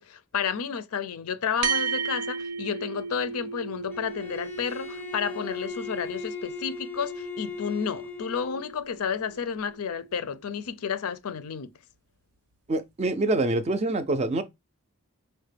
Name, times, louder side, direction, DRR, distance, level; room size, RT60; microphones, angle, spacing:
voice 1, 0.0-11.7, left 7 dB, 75° left, 0.4 m, -31 dB
sound 1, 1.6-10.3, right 5 dB, 75° right, 0.6 m, -35 dB
Bowed string instrument, 3.9-8.7, left 5 dB, 10° left, 0.6 m, -38 dB
voice 2, 12.7-14.4, right 2 dB, 30° right, 0.4 m, -25 dB
5.3 x 2.1 x 3.3 m
head